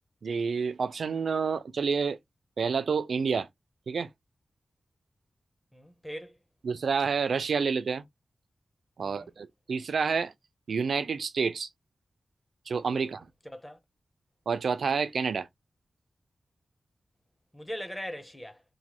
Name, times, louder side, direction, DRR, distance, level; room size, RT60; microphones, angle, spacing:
voice 1, 0.2-2.2 2.6-3.5 3.9-4.1 6.6-8.0 9.0-10.3 10.7-11.7 12.7-13.3 14.5-15.5, right 5 dB, 85° right, 0.4 m, -28 dB
voice 2, 5.7-6.4 9.0-9.3 13.0-13.2 13.4-13.8 17.5-18.6, equal, 10° left, 0.6 m, -40 dB
3.0 x 2.1 x 2.9 m
wide cardioid pair, 115°, 0 cm